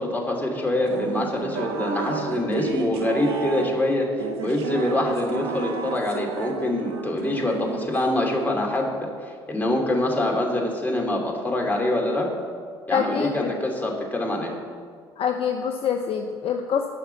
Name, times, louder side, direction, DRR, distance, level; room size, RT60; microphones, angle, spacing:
voice 1, 0.0-4.1 4.4-8.9 9.5-12.3 12.9-14.5, left 1 dB, 15° left, 0 dB, 2.8 m, -25 dB
sound 1, 0.9-8.2, right 5 dB, 75° right, 0.9 m, -32 dB
voice 2, 12.9-13.5 15.2-16.9, left 7 dB, 45° left, 4 dB, 0.8 m, -25 dB
12.5 x 5.8 x 7.1 m, 2.1 s
figure-of-eight pair, 55°, 14 cm